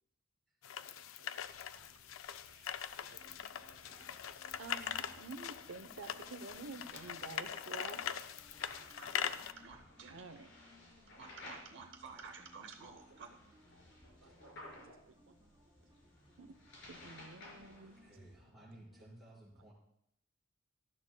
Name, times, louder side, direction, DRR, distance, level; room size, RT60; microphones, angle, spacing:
sound 1, 0.6-9.5, left 9 dB, 90° left, 0.5 m, -42 dB
voice 1, 0.8-1.3 3.0-4.2 4.6-8.2 10.1-10.5 13.1-13.2 14.2-15.4 16.4-16.6 16.9-18.0, right 3 dB, 90° right, 7 dB, 0.8 m, -51 dB
sound 2, 1.4-18.3, left 1 dB, 65° left, 4.8 m, -58 dB
sound 3, 3.0-19.0, equal, 20° right, 3.7 m, -66 dB
voice 2, 8.7-10.2 11.2-13.3, right 5 dB, 65° right, 4 dB, 0.9 m, -53 dB
voice 3, 17.7-19.7, right 1 dB, ahead, -7 dB, 4.8 m, -57 dB
17.5 x 12.5 x 2.2 m, 0.76 s
head